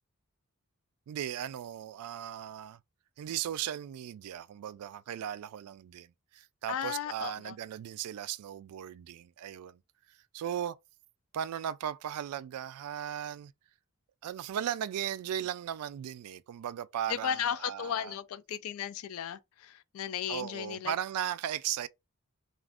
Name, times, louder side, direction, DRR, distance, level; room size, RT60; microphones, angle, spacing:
voice 1, 1.1-2.8 3.2-9.8 10.1-10.8 11.3-13.5 14.2-18.2 20.3-21.9, right 10 dB, 85° right, 0.3 m, -37 dB
voice 2, 6.7-7.5 17.1-20.9, left 8 dB, 70° left, 0.3 m, -35 dB
2.4 x 2.4 x 3.4 m
head